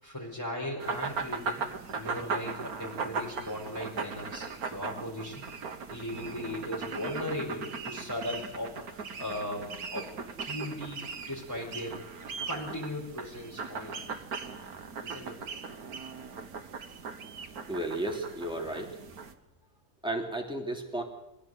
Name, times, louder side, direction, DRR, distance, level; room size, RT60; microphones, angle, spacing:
voice 1, 0.0-1.6 1.9-5.5 5.9-10.1 10.4-12.0 12.5-14.1 15.0-15.4, left 1 dB, 15° left, -5 dB, 4.7 m, -38 dB
sound 1, 0.8-19.3, right 5 dB, 90° right, 1.8 m, -38 dB
voice 2, 17.7-19.0 20.0-21.0, right 1 dB, 5° right, 1 dB, 3.1 m, -33 dB
23.0 x 16.0 x 7.9 m, 0.90 s
omnidirectional pair, 1.5 m